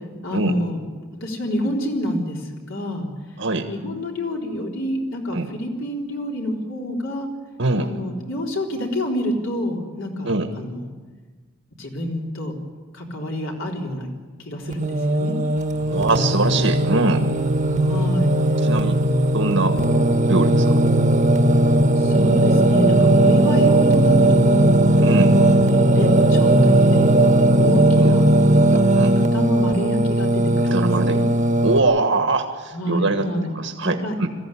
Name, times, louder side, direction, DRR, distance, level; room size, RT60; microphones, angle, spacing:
voice 1, 0.2-0.8 1.2-3.1 3.7-7.3 7.8-10.3 10.6-10.8 11.8-12.5 12.9-14.1 14.5-15.4 17.8-18.4 22.0-24.8 25.4-26.8 27.1-27.3 27.6-28.2 28.7-31.2 32.7-33.5 33.8-34.1, equal, 75° left, 0 dB, 3.9 m, -28 dB
voice 2, 7.6-7.9 10.2-10.5 15.8-17.3 18.6-19.0 19.3-19.8 20.3-20.8 25.0-25.4 28.0-28.1 29.0-29.1 30.7-31.2 31.6-33.2 33.6-34.3, right 2 dB, 70° right, 5 dB, 1.5 m, -22 dB
Singing, 14.7-31.8, right 1 dB, 35° right, 1.2 m, -17 dB
21.5 x 15.5 x 10.0 m, 1.4 s
head